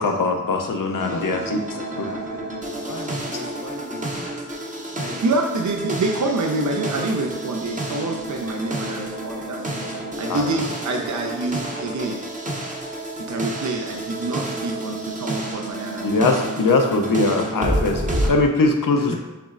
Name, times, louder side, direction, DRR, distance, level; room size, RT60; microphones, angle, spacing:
voice 1, 0.0-1.4 2.0-2.1 10.3-10.5 16.0-19.1, left 3 dB, 80° left, 4 dB, 0.6 m, -21 dB
sound 1, 1.0-18.3, right 1 dB, 25° right, 0.7 m, -30 dB
voice 2, 1.1-4.3 4.9-5.2 18.2-18.3 18.6-19.2, left 2 dB, 55° left, 0 dB, 1.0 m, -38 dB
voice 3, 5.2-9.8 10.2-12.2 13.2-16.1 16.7-16.8, right 2 dB, 60° right, 2 dB, 0.5 m, -26 dB
6.7 x 3.0 x 2.5 m, 1.1 s
wide cardioid pair, 60°, 33 cm